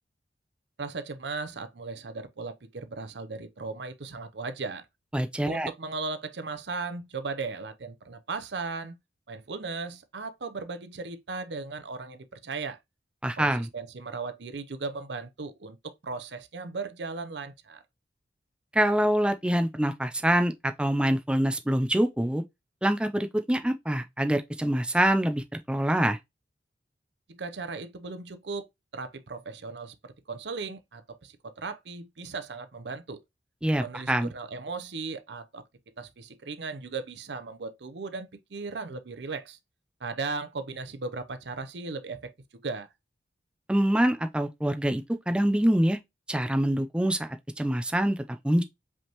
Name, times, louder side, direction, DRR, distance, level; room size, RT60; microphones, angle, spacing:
voice 1, 0.8-4.9 5.4-9.0 9.3-12.8 13.4-17.8 27.3-28.7 28.9-33.2 33.8-35.6 36.0-39.6 40.0-42.3 42.6-42.9, right 4 dB, 75° right, 0.7 m, -37 dB
voice 2, 5.1-5.7 13.2-13.7 18.7-22.4 22.8-26.2 33.6-34.3 43.7-46.0 46.3-48.6, right 1 dB, 5° right, 0.4 m, -25 dB
5.2 x 3.5 x 2.9 m
head